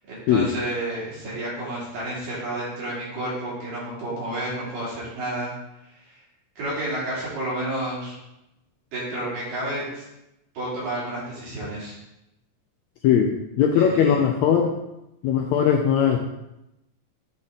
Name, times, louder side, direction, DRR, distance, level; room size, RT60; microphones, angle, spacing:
voice 1, 0.1-5.5 6.6-8.2 8.9-10.0 10.5-12.0 13.7-14.2, right 1 dB, 85° right, -8 dB, 4.6 m, -30 dB
voice 2, 13.0-14.8 15.2-16.2, left 8 dB, 80° left, 2 dB, 1.6 m, -20 dB
10.0 x 3.7 x 4.0 m, 0.89 s
omnidirectional pair, 3.8 m